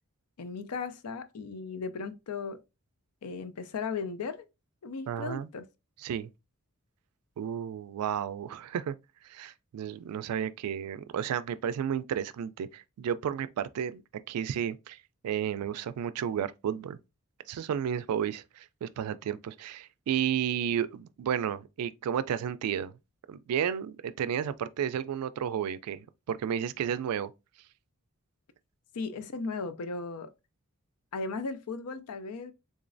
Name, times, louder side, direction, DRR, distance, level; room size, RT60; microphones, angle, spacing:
voice 1, 0.4-2.6 3.2-4.5 4.8-5.6 28.9-30.3 31.1-32.5, left 4 dB, 80° left, 0.5 m, -36 dB
voice 2, 5.1-5.5 6.0-6.3 7.4-8.9 9.3-14.0 14.3-15.0 15.2-17.0 17.5-22.9 23.3-27.3, right 8 dB, 90° right, 0.3 m, -32 dB
3.8 x 3.0 x 2.5 m
head